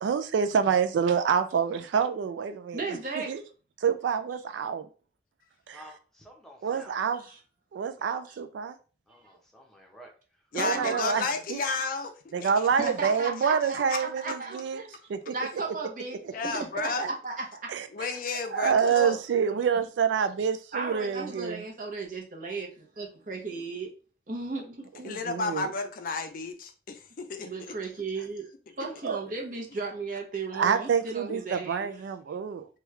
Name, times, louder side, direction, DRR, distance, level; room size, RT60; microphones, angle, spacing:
voice 1, 0.0-2.8 3.1-3.4 3.8-4.8 5.7-5.8 6.6-7.2 7.7-8.7 10.5-11.2 11.5-11.6 12.3-14.8 15.1-15.3 17.0-17.1 17.7-18.1 18.5-21.6 25.1-25.7 29.0-29.2 30.5-32.7, right 6 dB, 75° right, 0.3 m, -27 dB
voice 2, 2.7-3.3 7.2-7.4 8.3-8.4 10.6-11.2 12.8-14.9 15.3-17.7 19.5-19.6 20.7-22.7 23.0-23.9 24.3-25.1 27.4-28.5 28.8-31.9, right 3 dB, 45° right, 0.9 m, -35 dB
voice 3, 5.7-7.2 9.1-10.4, equal, ahead, 0.7 m, -51 dB
voice 4, 10.5-12.5 13.9-14.0 16.3-17.1 17.9-19.2 25.0-27.5, left 4 dB, 50° left, 0.4 m, -32 dB
3.1 x 2.3 x 3.1 m
head